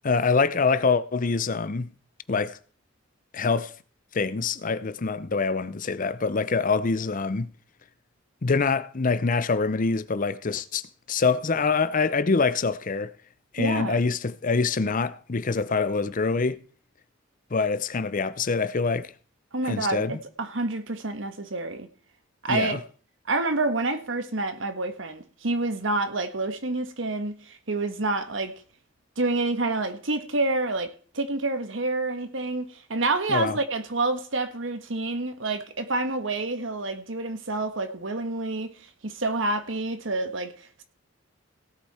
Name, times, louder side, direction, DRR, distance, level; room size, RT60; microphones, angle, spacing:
voice 1, 0.0-1.9 2.3-2.6 3.3-3.7 4.1-7.5 8.4-13.1 13.5-16.6 17.5-19.1 19.7-20.2 22.5-22.8 33.3-33.6, left 4 dB, 40° left, 0.6 m, -25 dB
voice 2, 13.6-14.0 19.5-21.9 22.4-22.8 23.3-28.5 29.2-40.8, right 2 dB, 70° right, 1.5 m, -28 dB
17.0 x 8.2 x 4.3 m
head